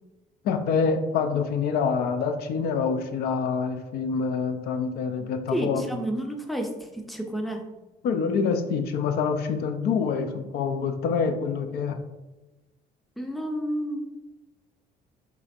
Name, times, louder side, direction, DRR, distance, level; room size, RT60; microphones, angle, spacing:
voice 1, 0.4-5.8 8.0-12.0, left 5 dB, 70° left, 7 dB, 0.5 m, -26 dB
voice 2, 5.5-7.7 13.2-14.1, right 1 dB, ahead, 3 dB, 0.5 m, -30 dB
4.0 x 2.5 x 4.1 m, 1.1 s
cardioid pair, 110°, 17 cm